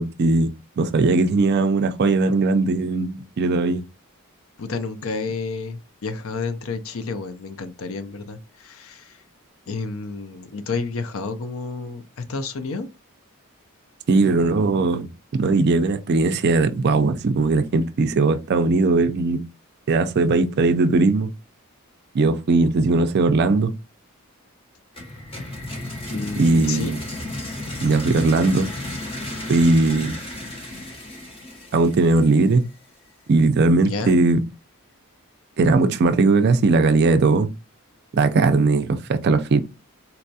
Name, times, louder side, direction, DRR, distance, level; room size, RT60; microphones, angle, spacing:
voice 1, 0.0-3.8 14.1-19.4 19.9-21.3 22.1-23.7 26.4-27.0 27.8-28.7 29.5-30.2 31.7-32.7 33.3-34.4 35.6-37.5 38.1-39.6, right 3 dB, 50° right, 0.4 m, -19 dB
voice 2, 4.6-9.2 9.7-12.9 26.1-27.0 33.8-34.2, left 4 dB, 70° left, 0.5 m, -30 dB
sound 1, 24.9-32.7, left 1 dB, 25° left, 0.9 m, -33 dB
4.0 x 2.2 x 2.7 m
head